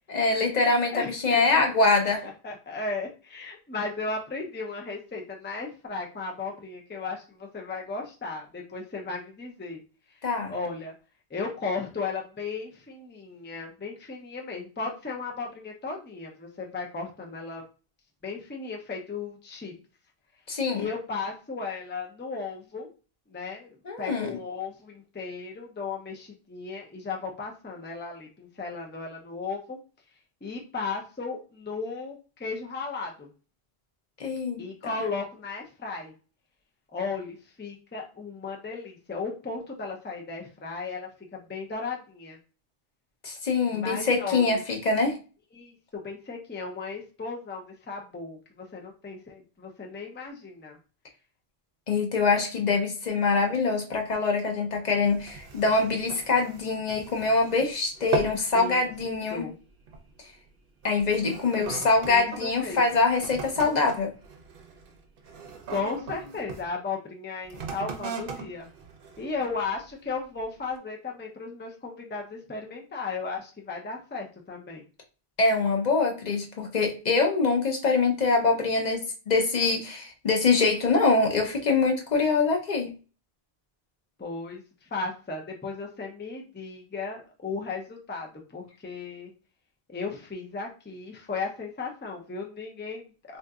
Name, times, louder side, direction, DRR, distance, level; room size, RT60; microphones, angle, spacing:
voice 1, 0.1-2.2 10.2-10.5 20.5-20.8 23.9-24.3 34.2-34.6 43.2-45.2 51.9-59.5 60.8-64.1 75.4-82.9, left 3 dB, 45° left, 2 dB, 0.8 m, -24 dB
voice 2, 0.9-9.8 10.5-10.9 11.3-17.6 18.2-19.7 20.7-22.9 23.3-23.7 24.0-29.8 30.4-33.3 34.6-36.1 36.9-42.4 43.6-44.6 45.5-50.8 58.5-58.9 59.3-59.5 61.5-62.8 65.7-68.7 69.2-74.8 84.2-84.6 84.9-89.3 89.9-93.4, left 4 dB, 15° left, 0 dB, 0.5 m, -35 dB
sound 1, 55.1-57.7 58.0-58.5 58.9-59.2 59.9-60.1 60.8-66.7 67.4-69.8 70.4-70.5, right 4 dB, 65° right, 0.8 m, -38 dB
3.7 x 2.6 x 2.3 m, 0.34 s
omnidirectional pair, 1.0 m